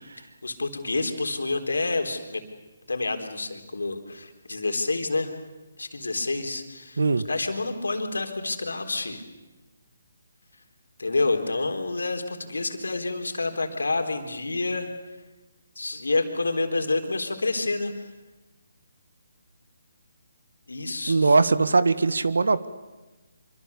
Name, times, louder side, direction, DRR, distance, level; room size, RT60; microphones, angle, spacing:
voice 1, 0.2-2.4 2.9-5.4 5.8-7.0 7.3-9.2 11.0-14.9 15.8-17.9 20.7-21.4, left 3 dB, 85° left, 5 dB, 3.8 m, -28 dB
voice 2, 21.1-22.7, right 3 dB, 80° right, 13 dB, 1.5 m, -20 dB
26.0 x 24.0 x 7.2 m, 1.1 s
figure-of-eight pair, 150°, 0 cm